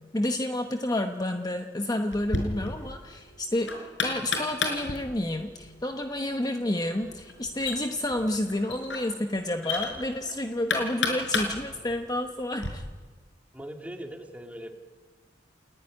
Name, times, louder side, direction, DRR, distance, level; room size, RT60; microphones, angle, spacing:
voice 1, 0.1-12.8, left 1 dB, 20° left, 5 dB, 1.1 m, -30 dB
Knock, 2.1-12.7, left 3 dB, 85° left, 5.3 m, -34 dB
voice 2, 13.5-14.7, equal, 10° right, 3 dB, 2.7 m, -40 dB
30.0 x 16.0 x 9.9 m, 1.4 s
head